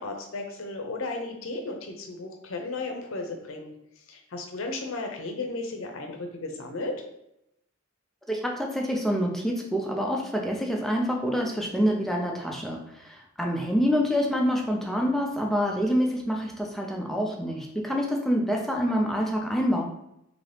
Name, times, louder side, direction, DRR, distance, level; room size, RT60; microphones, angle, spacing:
voice 1, 0.0-3.7 4.1-7.0, left 3 dB, 70° left, 3 dB, 0.6 m, -34 dB
voice 2, 8.3-19.8, equal, ahead, 0 dB, 0.5 m, -26 dB
2.8 x 2.7 x 3.2 m, 0.81 s
head